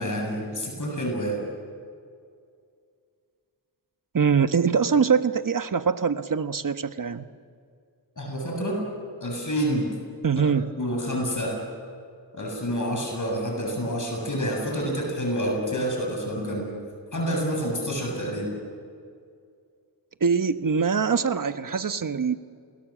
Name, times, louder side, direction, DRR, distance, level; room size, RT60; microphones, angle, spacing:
voice 1, 0.0-1.4 8.2-8.8 9.2-9.9 10.7-11.6 12.3-16.7 17.1-18.5, equal, 40° left, 0 dB, 7.2 m, -28 dB
voice 2, 4.1-7.3 10.2-10.7 20.2-22.3, right 6 dB, 45° right, 11 dB, 1.2 m, -23 dB
27.5 x 20.0 x 7.4 m, 2.2 s
cardioid pair, 65°, 45 cm